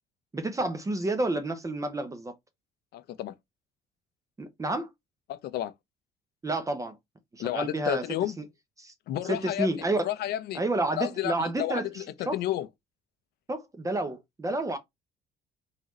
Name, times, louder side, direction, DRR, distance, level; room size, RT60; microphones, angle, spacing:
voice 1, 0.3-2.3 4.4-4.9 6.4-7.0 7.3-8.0 8.4-8.5 8.8-8.9 9.2-10.1 10.5-12.4 13.5-14.8, right 2 dB, 20° right, 0.8 m, -30 dB
voice 2, 2.9-3.4 5.3-5.7 7.4-8.4 9.1-9.7 10.0-10.6 10.9-12.7, left 12 dB, 70° left, 0.6 m, -31 dB
4.1 x 3.8 x 3.0 m
cardioid pair, 110°, 17 cm